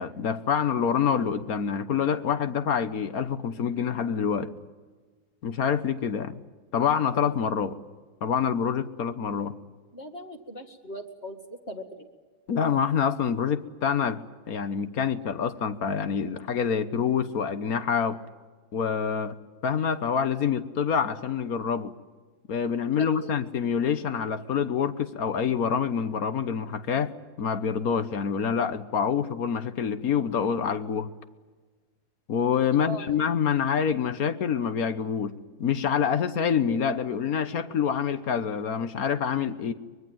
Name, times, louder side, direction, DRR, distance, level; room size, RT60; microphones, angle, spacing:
voice 1, 0.0-4.5 5.4-6.4 6.7-7.8 8.2-9.6 12.5-18.2 18.7-19.3 19.6-21.9 22.5-31.1 32.3-39.7, left 7 dB, 55° left, 12 dB, 1.4 m, -26 dB
voice 2, 9.9-12.1 23.0-23.3 32.7-33.2, right 1 dB, 35° left, 4 dB, 2.2 m, -39 dB
24.0 x 21.5 x 9.2 m, 1.4 s
omnidirectional pair, 2.1 m